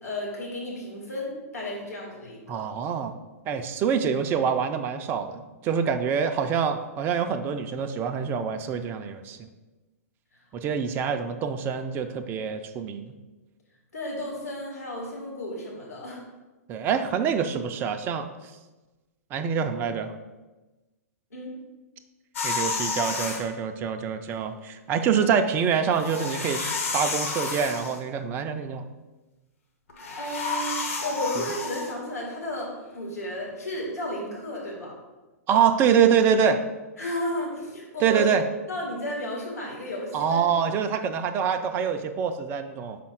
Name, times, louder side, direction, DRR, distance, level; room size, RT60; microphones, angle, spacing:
voice 1, 0.0-2.7 10.3-10.4 13.9-16.2 21.3-21.5 30.2-34.9 37.0-38.3 38.7-40.4, left 1 dB, 75° left, -3 dB, 2.1 m, -33 dB
voice 2, 2.5-3.1 3.5-9.5 10.5-13.1 16.7-18.3 19.3-20.1 22.4-28.9 35.5-36.6 38.0-38.4 40.1-43.0, right 7 dB, 25° right, 7 dB, 0.4 m, -25 dB
sound 1, 22.3-23.4 25.9-28.0 29.9-31.9, left 4 dB, 60° left, 1.2 m, -30 dB
5.5 x 4.2 x 4.6 m, 1.1 s
figure-of-eight pair, 105°, 8 cm